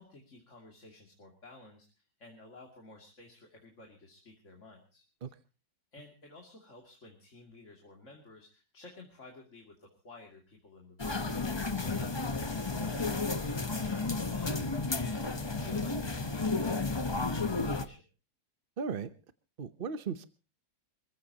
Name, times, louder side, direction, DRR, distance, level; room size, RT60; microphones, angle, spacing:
voice 1, 0.0-5.0 5.9-18.0, left 2 dB, 40° left, 1 dB, 3.0 m, -53 dB
sound 1, 11.0-17.9, left 3 dB, 20° left, 0.7 m, -32 dB
voice 2, 18.8-19.1 19.6-20.3, right 6 dB, 45° right, 12 dB, 0.7 m, -36 dB
26.5 x 15.5 x 2.9 m, 0.33 s
omnidirectional pair, 2.0 m